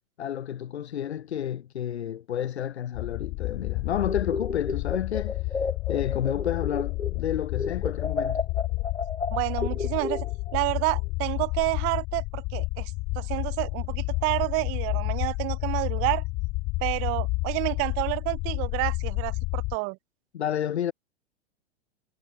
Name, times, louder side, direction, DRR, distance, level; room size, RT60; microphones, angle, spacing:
voice 1, 0.2-8.4 20.3-20.9, left 10 dB, 70° left, 4.9 m, -31 dB
sound 1, 2.9-19.8, left 24 dB, 35° left, 1.2 m, -30 dB
sound 2, 4.0-7.3 7.6-10.6, left 4 dB, 90° left, 6.6 m, -32 dB
voice 2, 9.3-10.3 10.5-16.2 16.8-20.0, right 33 dB, 40° right, 2.5 m, -29 dB
hypercardioid pair, 105°, 34 cm